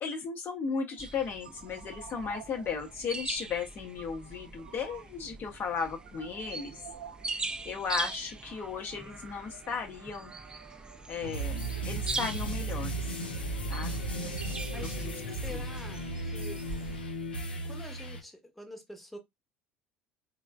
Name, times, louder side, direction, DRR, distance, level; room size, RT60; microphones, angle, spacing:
voice 1, 0.0-6.8 7.6-10.3 11.1-13.1 13.7-14.0 15.0-15.1 15.5-15.6, left 5 dB, 40° left, 0.6 m, -35 dB
sound 1, 0.9-15.4, right 8 dB, 80° right, 0.4 m, -52 dB
sound 2, 1.0-17.0, right 3 dB, 15° right, 0.4 m, -42 dB
sound 3, 11.2-18.2, right 1 dB, 85° left, 0.5 m, -35 dB
voice 2, 15.3-16.6 17.6-19.2, equal, ahead, 0.8 m, -46 dB
3.1 x 2.0 x 2.2 m
figure-of-eight pair, 65°, 5 cm